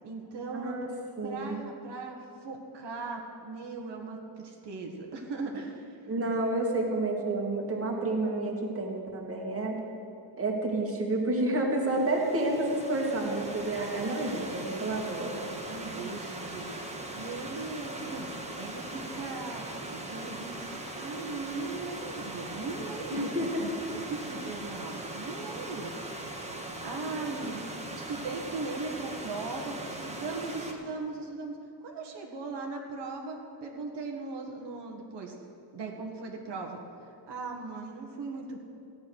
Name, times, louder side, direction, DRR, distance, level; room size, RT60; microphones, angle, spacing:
voice 1, 0.0-0.7 1.2-6.0 14.7-15.1 15.5-18.3 18.5-25.9 26.8-27.6 27.9-35.3 35.7-38.6, right 3 dB, 80° right, 1 dB, 1.6 m, -39 dB
voice 2, 0.5-0.9 1.2-1.6 6.1-9.8 10.4-15.4 23.1-23.6, right 2 dB, 35° right, -1 dB, 2.0 m, -30 dB
Stream / Liquid, 11.8-30.7, right 1 dB, 15° right, 1.3 m, -40 dB
15.0 x 9.6 x 6.3 m, 2.7 s
wide cardioid pair, 150°, 42 cm